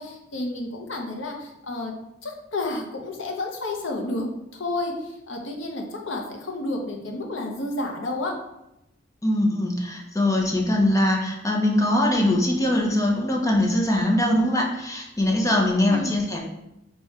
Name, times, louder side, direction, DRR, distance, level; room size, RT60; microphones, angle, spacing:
voice 1, 0.0-1.9 2.2-8.3 15.8-16.2, left 2 dB, 75° left, 1 dB, 0.8 m, -31 dB
voice 2, 9.2-16.4, left 1 dB, 15° left, 0 dB, 0.7 m, -22 dB
4.8 x 2.3 x 4.1 m, 0.89 s
head